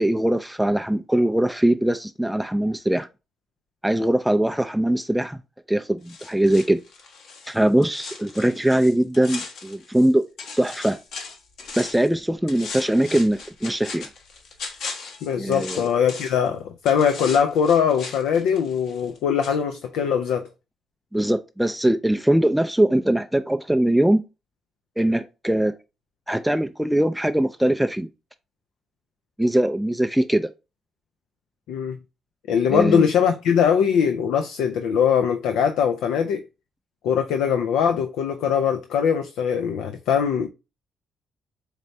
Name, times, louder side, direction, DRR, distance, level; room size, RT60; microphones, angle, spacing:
voice 1, 0.0-3.1 3.8-5.4 5.7-6.8 7.5-10.2 10.6-11.0 11.8-14.1 15.4-15.9 21.1-24.2 25.0-25.7 26.3-28.1 29.4-30.5 32.7-33.0, right 1 dB, 5° right, 0.3 m, -21 dB
sound 1, 6.1-10.1 10.4-12.1 12.5-16.5 16.8-19.2 19.4-19.5, left 4 dB, 75° left, 1.1 m, -38 dB
voice 2, 15.2-20.4 31.7-32.0 32.5-36.5 37.0-40.5, left 7 dB, 90° left, 0.4 m, -21 dB
4.3 x 3.2 x 2.6 m
cardioid pair, 90°, 0 cm